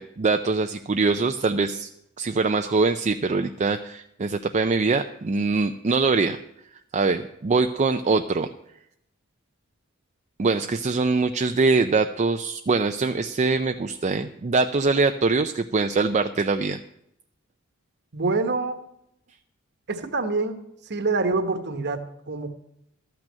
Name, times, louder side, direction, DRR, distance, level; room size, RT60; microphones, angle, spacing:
voice 1, 0.0-1.9 2.2-6.4 6.9-8.5 10.4-16.8, right 4 dB, 35° right, 7 dB, 0.4 m, -23 dB
voice 2, 18.1-18.8 19.9-20.6 20.9-22.5, right 3 dB, 55° right, 8 dB, 1.2 m, -26 dB
13.0 x 6.1 x 8.7 m, 0.80 s
head